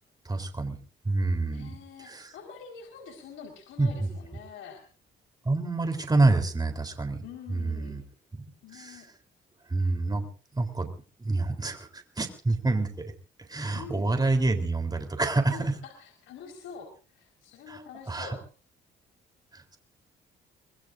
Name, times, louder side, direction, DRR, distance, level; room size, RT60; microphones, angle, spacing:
voice 1, 0.3-0.8 1.1-1.7 2.0-2.3 3.8-4.1 5.4-7.2 7.5-8.0 8.7-9.0 9.7-10.3 10.5-10.9 11.2-13.1 13.5-15.7 17.7-17.8 18.1-18.4 19.5-19.8, right 2 dB, 20° right, 6 dB, 3.7 m, -27 dB
voice 2, 1.4-4.8 7.2-8.0 8.6-9.1 13.7-14.1 15.5-18.4, left 6 dB, 85° left, 2 dB, 4.7 m, -45 dB
25.5 x 20.5 x 2.6 m, 0.38 s
cardioid pair, 90°, 20 cm